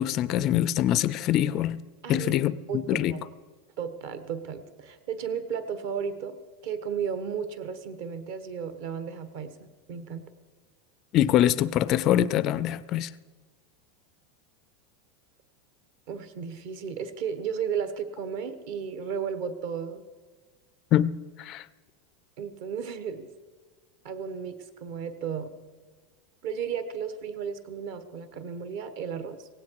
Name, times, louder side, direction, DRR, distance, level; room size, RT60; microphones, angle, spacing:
voice 1, 0.0-1.8 2.1-3.1 11.1-13.1 20.9-21.1 21.4-21.6, left 12 dB, 30° left, 16 dB, 0.4 m, -24 dB
voice 2, 2.0-2.4 2.7-3.3 3.8-6.4 6.6-9.5 9.9-10.3 16.1-20.0 22.4-23.3 24.0-24.5 24.8-25.5 26.4-29.5, right 7 dB, 50° right, 11 dB, 1.3 m, -34 dB
17.0 x 17.0 x 4.7 m, 1.4 s
supercardioid pair, 180°, 0 cm